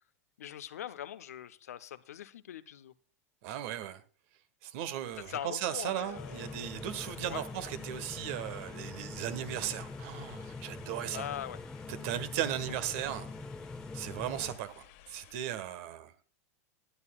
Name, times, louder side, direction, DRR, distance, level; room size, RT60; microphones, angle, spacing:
voice 1, 0.4-2.9 5.3-6.5 7.3-7.5 11.1-11.6, left 10 dB, 80° left, 0.7 m, -41 dB
voice 2, 3.4-4.0 4.6-11.3 11.9-13.3 13.9-16.1, right 11 dB, 60° right, 1.4 m, -37 dB
sound 1, 4.8-15.7, left 12 dB, 60° left, 1.8 m, -57 dB
sound 2, 6.1-14.6, left 3 dB, 10° left, 0.7 m, -44 dB
21.5 x 9.6 x 2.4 m
hypercardioid pair, 95°, 8 cm